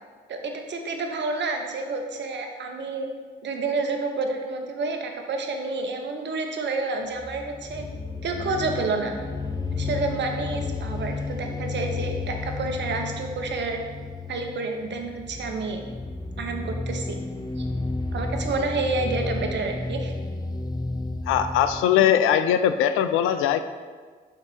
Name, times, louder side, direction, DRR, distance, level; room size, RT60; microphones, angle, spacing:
voice 1, 0.3-3.1 3.4-7.8 8.2-9.1 9.8-13.8 14.3-15.8 16.4-17.2 17.6-17.7 18.1-20.1, right 3 dB, 60° right, 4 dB, 0.9 m, -29 dB
sound 1, 7.1-21.8, left 3 dB, 20° left, 0.7 m, -32 dB
voice 2, 21.3-23.6, left 9 dB, 75° left, 10 dB, 0.4 m, -20 dB
5.6 x 3.9 x 4.8 m, 1.5 s
hypercardioid pair, 45°, 21 cm